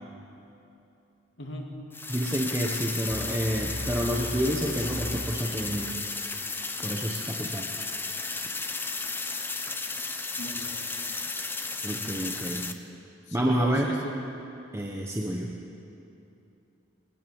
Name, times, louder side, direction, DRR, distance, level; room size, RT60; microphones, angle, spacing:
voice 1, 1.4-1.8 3.4-3.9 10.4-10.8 13.3-14.2, left 1 dB, 65° left, 1 dB, 2.6 m, -39 dB
sound 1, 1.9-12.7, left 3 dB, 10° left, 0.8 m, -34 dB
voice 2, 2.1-6.0 6.8-7.7 11.8-12.6 13.3-13.9 14.7-15.5, right 1 dB, 15° right, -1 dB, 1.2 m, -29 dB
sound 2, 3.1-6.0, equal, 35° right, 3.0 m, -38 dB
21.0 x 18.5 x 7.2 m, 2.8 s
head